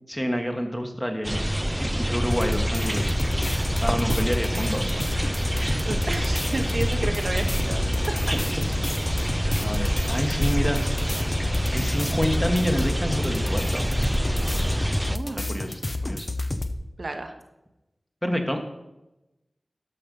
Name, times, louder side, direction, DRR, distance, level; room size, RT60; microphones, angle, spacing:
voice 1, 0.1-1.5 1.7-3.2 3.8-5.1 9.6-11.0 11.7-13.8 15.5-16.3 18.2-18.6, equal, 10° left, 4 dB, 1.3 m, -28 dB
sound 1, 1.2-15.2, right 1 dB, 10° right, 0.4 m, -27 dB
sound 2, 2.3-16.7, left 2 dB, 35° left, 0.7 m, -29 dB
voice 2, 5.9-7.9 15.1-15.6 17.0-17.3, right 2 dB, 60° right, 5 dB, 0.9 m, -32 dB
12.5 x 5.2 x 5.3 m, 0.97 s
wide cardioid pair, 65°, 0 cm